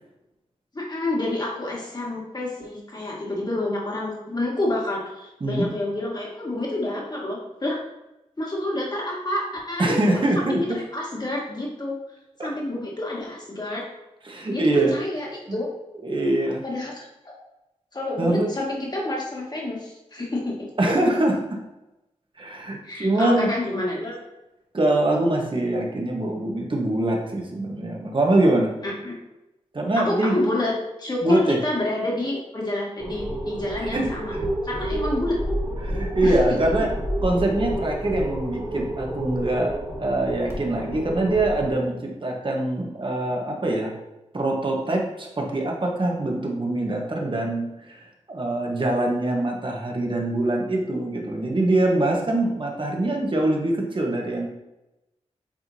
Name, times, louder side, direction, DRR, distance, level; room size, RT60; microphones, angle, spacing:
voice 1, 0.7-7.8 8.4-12.0 12.4-13.8 14.5-14.6 14.9-15.7 16.6-17.3 17.9-20.7 22.8-24.2 28.8-29.1 29.9-30.7 31.0-34.4 34.6-35.4 36.2-36.3, left 1 dB, 35° left, -3 dB, 2.1 m, -28 dB
voice 2, 9.8-10.6 12.4-12.5 14.2-15.0 15.5-15.6 16.0-16.6 18.2-18.5 20.8-21.6 22.4-23.5 24.7-28.7 29.7-30.4 31.2-31.6 33.8-34.1 35.8-36.9 37.2-43.9 44.3-54.5, right 1 dB, 45° right, 0 dB, 1.4 m, -23 dB
sound 1, 33.0-41.7, equal, 25° right, 1.9 m, -29 dB
8.8 x 3.7 x 2.9 m, 0.96 s
cardioid pair, 55°, 12 cm